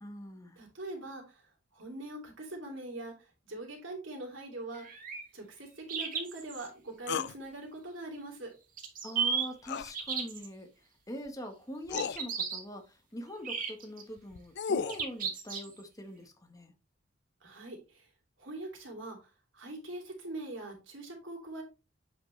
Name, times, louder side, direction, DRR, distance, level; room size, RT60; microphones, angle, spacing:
voice 1, 0.0-0.6 9.0-10.7 11.1-16.7, equal, 20° left, 1.4 m, -43 dB
voice 2, 0.6-1.4 1.7-3.1 3.5-4.9 5.3-8.5 17.4-18.0 18.4-19.2 19.5-21.6, right 2 dB, 80° right, 2.9 m, -42 dB
sound 1, 4.7-5.2 5.9-6.7 8.8-9.4 9.9-10.5 11.9-12.6 13.4-14.0 14.9-15.8, right 6 dB, 45° right, 1.7 m, -34 dB
sound 2, 7.1-7.3 9.6-9.9 11.3-11.4 11.9-12.2 14.2-15.0, left 6 dB, 60° left, 0.4 m, -33 dB
7.9 x 5.2 x 3.3 m
head